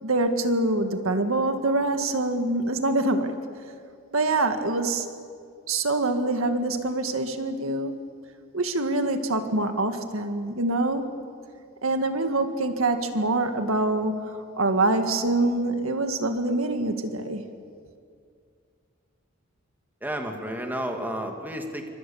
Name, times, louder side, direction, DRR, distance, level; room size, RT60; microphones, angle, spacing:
voice 1, 0.0-3.3 4.1-5.1 5.7-8.0 8.5-11.1 11.8-17.4, right 2 dB, 80° right, 7 dB, 1.9 m, -25 dB
voice 2, 20.0-21.9, right 1 dB, 10° right, 3 dB, 2.4 m, -31 dB
29.0 x 25.0 x 7.2 m, 2.2 s
head